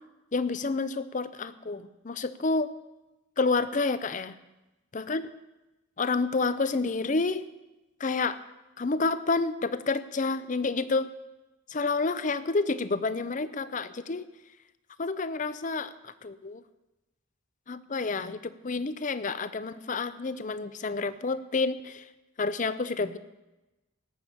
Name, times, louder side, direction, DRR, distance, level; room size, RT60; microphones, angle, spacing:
voice 1, 0.3-2.7 3.4-4.4 4.9-5.2 6.0-7.5 8.0-8.4 8.8-11.1 11.7-14.2 15.0-16.6 17.7-22.1 22.4-23.2, left 3 dB, 40° left, 14 dB, 0.6 m, -29 dB
17.5 x 6.8 x 7.2 m, 1.0 s
head